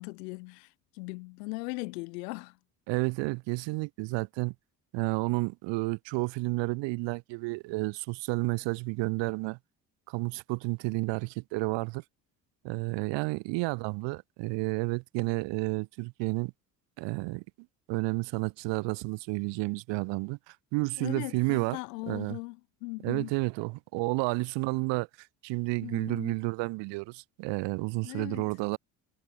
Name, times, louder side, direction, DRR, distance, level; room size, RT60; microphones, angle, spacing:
voice 1, 0.0-2.6 21.0-23.3 25.8-26.3 28.0-28.4, left 27 dB, 80° left, 1.0 m, -39 dB
voice 2, 2.9-4.5 4.9-9.6 10.1-12.0 12.6-16.5 17.0-17.4 17.9-21.8 22.1-22.4 23.0-28.8, right 26 dB, 65° right, 0.6 m, -31 dB
hypercardioid pair, 55°, 48 cm